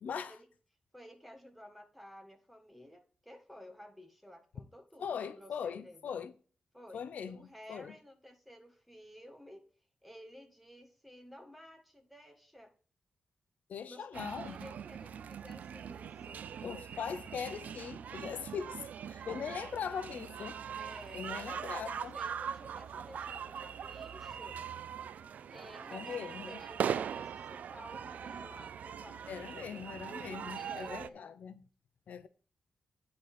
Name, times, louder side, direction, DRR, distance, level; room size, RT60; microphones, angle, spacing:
voice 1, 0.0-0.4 5.0-6.3 6.9-7.4 7.7-7.9 13.7-14.5 16.6-20.6 21.1-22.1 25.9-26.6 29.3-31.5 32.1-32.3, left 7 dB, 80° left, 0.7 m, -40 dB
voice 2, 0.9-6.2 6.7-9.7 10.0-12.7 13.8-16.4 20.7-21.7 22.1-24.6 25.5-29.9 30.5-31.3, equal, ahead, 1.6 m, -53 dB
sound 1, 14.1-31.1, right 8 dB, 80° right, 0.5 m, -41 dB
9.6 x 3.9 x 6.8 m
wide cardioid pair, 120°, 3 cm